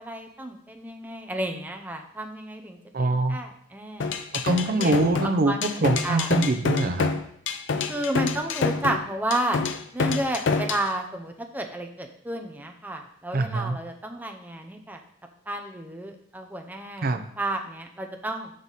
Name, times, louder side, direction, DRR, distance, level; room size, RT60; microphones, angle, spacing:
voice 1, 0.0-4.2 4.7-5.0 5.4-6.3 7.9-15.0 15.5-18.5, right 1 dB, 10° right, 3 dB, 0.7 m, -32 dB
voice 2, 2.9-3.4 4.3-7.1 13.3-13.8 17.0-17.2, right 2 dB, 50° right, 8 dB, 0.6 m, -24 dB
sound 1, 4.0-10.9, left 4 dB, 85° left, 0.5 m, -27 dB
6.4 x 5.6 x 4.0 m, 0.67 s
head